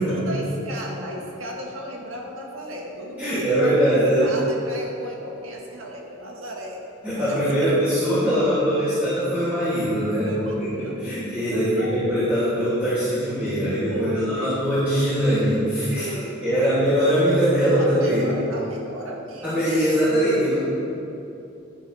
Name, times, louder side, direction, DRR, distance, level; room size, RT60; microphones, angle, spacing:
voice 1, 0.0-6.8 7.2-7.8 10.3-10.5 10.8-11.0 11.5-12.2 13.9-14.6 16.0-16.7 18.0-19.8, equal, 80° right, -1 dB, 1.7 m, -35 dB
voice 2, 3.2-4.3 7.0-10.3 10.8-14.1 14.4-16.1 16.4-18.3 19.4-20.6, equal, 10° right, -15 dB, 2.6 m, -21 dB
11.0 x 9.8 x 3.4 m, 2.7 s
head